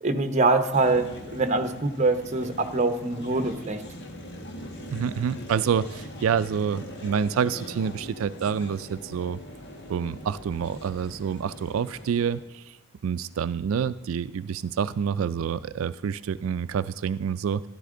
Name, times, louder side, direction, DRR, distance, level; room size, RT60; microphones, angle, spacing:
voice 1, 0.0-3.8, right 3 dB, 35° right, 7 dB, 0.9 m, -24 dB
sound 1, 0.7-12.4, equal, 55° left, 1.4 m, -42 dB
voice 2, 4.9-9.4 9.9-12.8 13.0-17.7, right 7 dB, 80° right, 14 dB, 0.4 m, -27 dB
13.5 x 12.0 x 3.8 m, 1.0 s
head